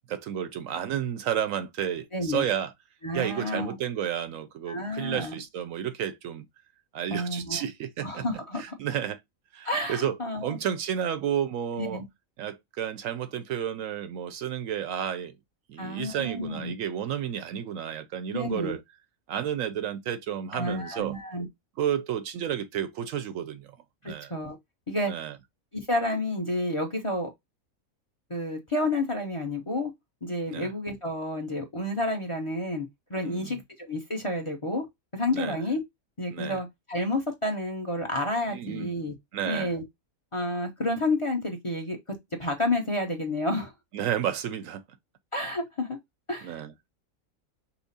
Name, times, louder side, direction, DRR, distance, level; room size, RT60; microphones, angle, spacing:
voice 1, 0.1-2.7 3.1-6.5 6.9-8.2 8.6-9.2 9.5-12.0 12.4-15.3 15.7-18.8 19.3-21.1 21.8-23.7 24.0-24.3 25.1-25.3 30.5-30.7 33.2-33.6 35.3-35.6 36.3-36.6 38.5-38.9 39.3-39.7 43.9-44.8 46.4-46.7, right 9 dB, 75° right, 1.0 m, -31 dB
voice 2, 2.1-2.5 3.0-3.8 4.7-5.4 7.1-7.6 8.0-8.8 9.6-10.5 11.8-12.0 15.8-16.7 18.3-18.8 20.5-21.5 24.0-24.6 24.9-25.1 25.7-27.3 28.3-29.9 30.2-34.9 35.1-35.8 36.2-39.1 39.5-39.8 40.3-43.7 45.3-46.0 46.3-46.6, left 1 dB, 25° left, 0.8 m, -30 dB
5.8 x 2.0 x 4.0 m
omnidirectional pair, 1.5 m